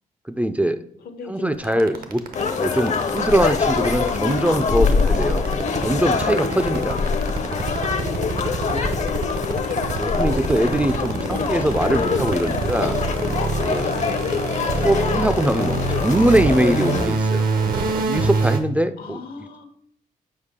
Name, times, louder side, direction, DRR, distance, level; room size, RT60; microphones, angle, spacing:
voice 1, 0.3-0.8 1.3-2.2 2.5-5.5 5.8-7.0 9.9-13.0 13.6-13.9 14.8-17.5 18.0-19.2, right 1 dB, 10° right, 10 dB, 0.3 m, -22 dB
voice 2, 1.0-2.6 6.9-7.8 8.2-9.6 13.8-14.2 19.0-19.6, left 4 dB, 85° left, 7 dB, 0.9 m, -40 dB
sound 1, 1.6-18.6, right 4 dB, 70° right, 0.8 m, -25 dB
sound 2, 2.3-17.1, left 5 dB, 50° left, 0.6 m, -24 dB
6.5 x 4.8 x 3.6 m, 0.72 s
cardioid pair, 90°, 15 cm